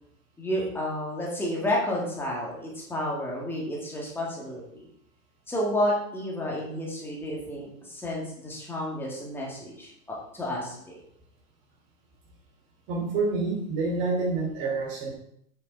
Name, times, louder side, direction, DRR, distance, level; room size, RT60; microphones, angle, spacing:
voice 1, 0.4-4.9 5.5-11.0, left 1 dB, 5° left, -4 dB, 2.0 m, -31 dB
voice 2, 12.9-15.1, right 3 dB, 35° right, 0 dB, 3.1 m, -27 dB
8.4 x 6.6 x 4.4 m, 0.70 s
hypercardioid pair, 155°, 44 cm